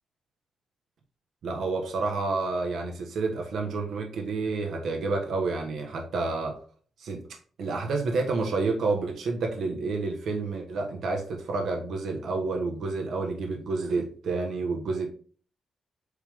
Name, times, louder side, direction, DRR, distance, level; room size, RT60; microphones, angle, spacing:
voice 1, 1.4-6.6 7.0-7.3 7.6-15.1, right 3 dB, 70° right, 1 dB, 1.3 m, -29 dB
8.1 x 3.6 x 3.6 m, 0.43 s
wide cardioid pair, 135°, 0 cm